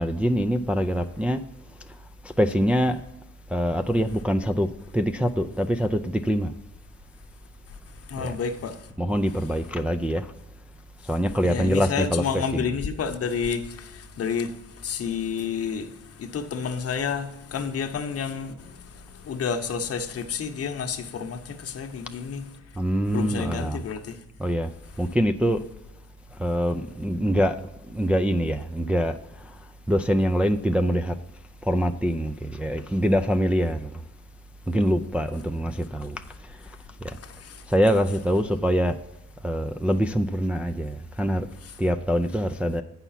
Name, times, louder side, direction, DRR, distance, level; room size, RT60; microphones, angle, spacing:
voice 1, 0.0-1.4 2.2-3.0 3.5-4.7 4.9-6.5 8.2-8.3 9.0-10.3 11.1-12.7 22.8-23.8 24.4-24.7 25.0-25.6 26.4-27.6 27.9-29.2 29.4-29.5 29.9-31.2 31.6-33.9 34.7-36.2 37.0-37.2 37.7-39.0 39.4-41.5 41.8-42.8, equal, 5° right, 0.4 m, -24 dB
voice 2, 7.7-8.9 11.4-22.5 23.1-24.2 37.1-37.7 41.6-41.7, left 6 dB, 50° left, 0.9 m, -30 dB
8.1 x 5.8 x 5.7 m
cardioid pair, 90°, 30 cm